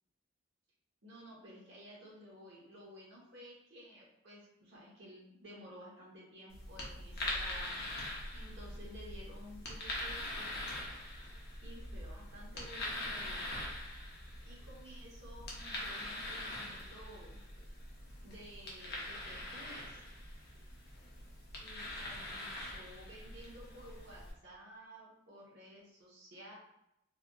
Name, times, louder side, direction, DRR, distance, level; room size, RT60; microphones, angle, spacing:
voice 1, 1.0-10.8 11.6-13.5 14.4-17.4 18.2-20.0 21.5-26.5, equal, 65° right, -4 dB, 1.1 m, -54 dB
sound 1, 6.5-24.3, left 1 dB, 55° left, 0.8 m, -43 dB
3.4 x 2.4 x 2.4 m, 0.81 s
head